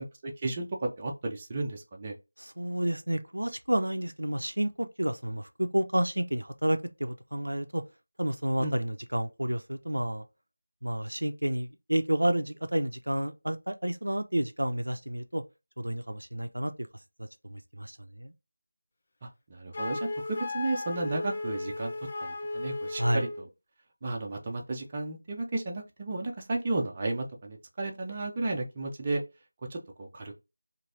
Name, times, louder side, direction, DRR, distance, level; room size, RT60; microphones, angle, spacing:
voice 1, 0.0-2.1 8.6-8.7 19.2-20.1 20.5-21.9 22.2-23.5 24.0-29.2 29.7-30.3, right 2 dB, 20° right, 0.6 m, -33 dB
voice 2, 2.4-7.8 8.2-10.2 10.8-15.4 15.8-16.9 17.2-18.3 22.9-23.2, right 1 dB, 80° right, 0.4 m, -30 dB
Wind instrument woodwind instrument, 19.7-23.4, left 2 dB, 30° left, 0.5 m, -35 dB
3.1 x 2.5 x 2.5 m
figure-of-eight pair, 170°, 0 cm